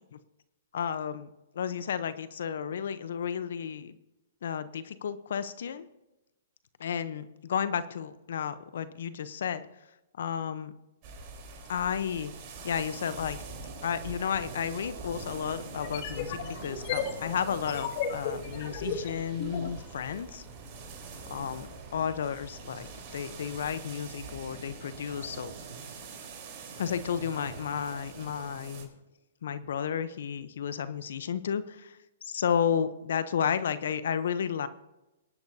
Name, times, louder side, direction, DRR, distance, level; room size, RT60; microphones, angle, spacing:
voice 1, 0.7-4.0 4.4-5.9 6.8-9.6 10.2-10.7 11.7-12.3 12.6-13.4 13.8-20.4 21.3-25.5 26.8-28.9 29.4-32.0 32.2-34.7, left 8 dB, 70° left, 13 dB, 0.8 m, -32 dB
sound 1, 11.0-28.9, right 4 dB, 40° right, 3.9 m, -44 dB
sound 2, 15.3-23.8, right 1 dB, 10° right, 3.1 m, -52 dB
sound 3, 15.7-19.7, left 7 dB, 50° left, 2.2 m, -35 dB
23.0 x 10.5 x 2.8 m, 0.97 s
hypercardioid pair, 135°, 0 cm